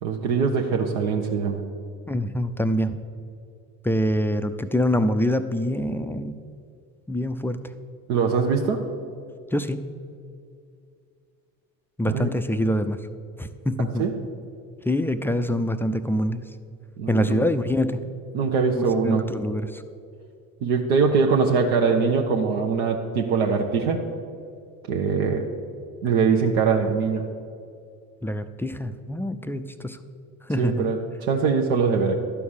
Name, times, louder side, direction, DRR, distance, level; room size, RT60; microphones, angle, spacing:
voice 1, 0.0-1.6 8.1-8.8 12.1-12.3 14.0-14.1 17.0-17.4 18.3-19.3 20.6-24.0 24.9-25.5 26.0-27.3 30.6-32.2, right 5 dB, 75° right, 1 dB, 0.9 m, -22 dB
voice 2, 2.1-2.9 3.8-6.4 7.1-7.6 9.5-9.9 12.0-13.0 13.4-14.0 14.8-16.4 17.1-18.0 18.8-19.8 28.2-30.0 30.5-30.9, equal, 5° left, 9 dB, 0.3 m, -25 dB
11.5 x 4.7 x 7.2 m, 2.4 s
hypercardioid pair, 70°, 41 cm